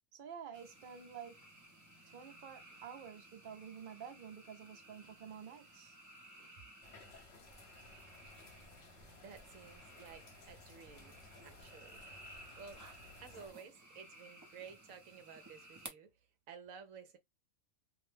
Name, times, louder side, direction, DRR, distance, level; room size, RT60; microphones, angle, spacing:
voice 1, 0.1-1.4 2.1-6.0 6.4-6.6, right 7 dB, 50° right, 0.7 m, -50 dB
sound 1, 0.5-15.9, right 1 dB, 25° right, 0.4 m, -57 dB
sound 2, 6.8-13.5, left 2 dB, 55° left, 1.1 m, -58 dB
voice 2, 9.2-12.0 12.3-12.9 13.2-17.2, right 6 dB, 75° right, 1.0 m, -54 dB
2.6 x 2.1 x 3.2 m
omnidirectional pair, 1.5 m